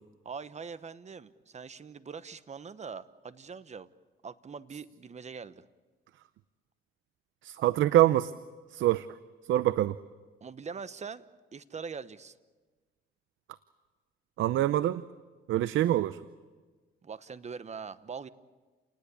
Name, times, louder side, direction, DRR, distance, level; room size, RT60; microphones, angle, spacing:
voice 1, 0.2-3.9 4.2-5.6 10.4-12.4 17.0-18.3, right 5 dB, 35° right, 15 dB, 1.1 m, -42 dB
voice 2, 7.4-8.3 8.7-9.1 9.5-10.0 14.4-15.0 15.5-16.2, right 13 dB, 80° right, 15 dB, 0.7 m, -25 dB
29.5 x 19.0 x 8.4 m, 1.4 s
cardioid pair, 90°, 20 cm